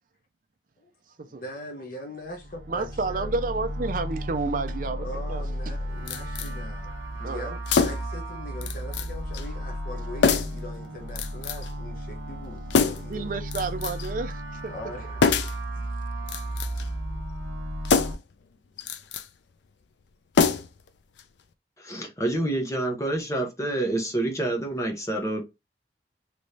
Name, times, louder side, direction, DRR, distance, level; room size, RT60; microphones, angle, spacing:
voice 1, 1.2-3.4 5.0-13.3 14.7-15.2, left 1 dB, 50° left, 0.8 m, -41 dB
sound 1, 2.3-18.1, right 1 dB, 85° right, 1.0 m, -34 dB
voice 2, 2.7-5.4 7.2-7.6 13.1-14.7 15.8-15.9, right 3 dB, 45° right, 0.4 m, -30 dB
sound 2, 6.1-6.5 7.7-8.2 8.6-9.1 9.3-9.5 10.2-10.6 11.2-11.7 12.7-13.2 13.5-14.1 15.2-15.6 16.2-16.9 17.8-18.3 18.8-19.3 20.3-20.9 21.2-21.3, left 5 dB, 70° left, 0.4 m, -24 dB
voice 3, 21.8-25.4, right 1 dB, 15° left, 0.8 m, -28 dB
3.3 x 3.0 x 2.6 m
head